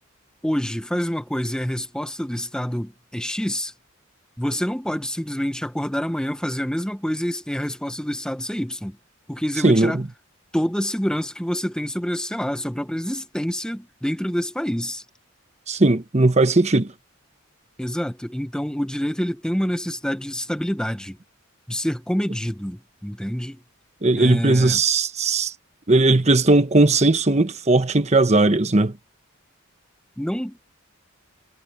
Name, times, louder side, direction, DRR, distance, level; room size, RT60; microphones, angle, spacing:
voice 1, 0.4-3.7 4.4-9.0 9.3-10.0 10.5-15.0 17.8-21.2 21.7-23.6 24.1-24.8 30.2-30.6, equal, 5° left, 1.0 m, -27 dB
voice 2, 9.6-10.0 15.7-16.9 24.0-25.5 25.9-28.9, right 2 dB, 30° right, 1.1 m, -18 dB
head